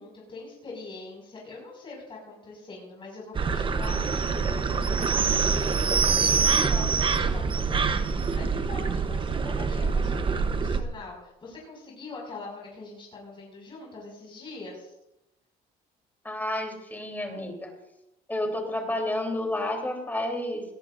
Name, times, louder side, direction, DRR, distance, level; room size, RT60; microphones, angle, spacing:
voice 1, 0.0-7.9 8.3-14.9, left 3 dB, 30° left, -3 dB, 5.8 m, -43 dB
sound 1, 3.3-10.8, right 5 dB, 30° right, 0.9 m, -25 dB
voice 2, 16.2-17.7 18.3-20.6, left 1 dB, 10° left, 2 dB, 3.5 m, -30 dB
19.0 x 17.5 x 2.6 m, 0.89 s
cardioid pair, 110°, 17 cm